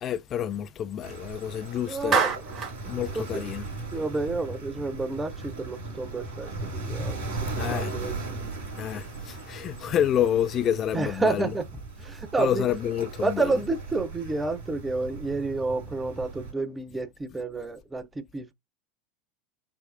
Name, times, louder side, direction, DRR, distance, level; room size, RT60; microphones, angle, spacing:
voice 1, 0.0-2.2 2.9-3.6 7.6-8.0 8.8-11.5 12.4-13.6, left 10 dB, 35° left, 0.3 m, -28 dB
sound 1, 1.0-16.5, right 3 dB, 55° right, 2.8 m, -38 dB
voice 2, 1.9-2.3 2.8-3.4 3.9-8.6 10.9-11.7 12.0-12.7 13.2-18.5, right 3 dB, 15° right, 0.5 m, -30 dB
Clapping, 2.1-2.8, right 6 dB, 35° right, 1.1 m, -25 dB
5.6 x 2.0 x 2.4 m
figure-of-eight pair, 80°, 0 cm